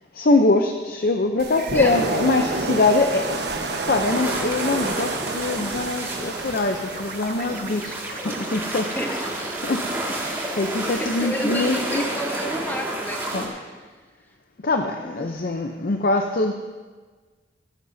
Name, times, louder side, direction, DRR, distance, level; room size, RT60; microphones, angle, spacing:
voice 1, 0.1-3.4 3.7-8.9 9.6-9.9 10.2-12.0 13.3-13.5 14.6-16.5, left 2 dB, 55° left, 4 dB, 0.6 m, -23 dB
sound 1, 1.4-7.8, right 3 dB, 65° right, 1.2 m, -29 dB
sound 2, 1.5-2.0 5.7-11.3, right 6 dB, 50° right, 0.7 m, -40 dB
sound 3, 4.1-13.5, right 1 dB, 15° right, 2.0 m, -31 dB
voice 2, 8.9-9.6 10.8-13.6 15.2-15.3, equal, 10° left, 2 dB, 1.1 m, -31 dB
16.0 x 13.5 x 2.7 m, 1.4 s
head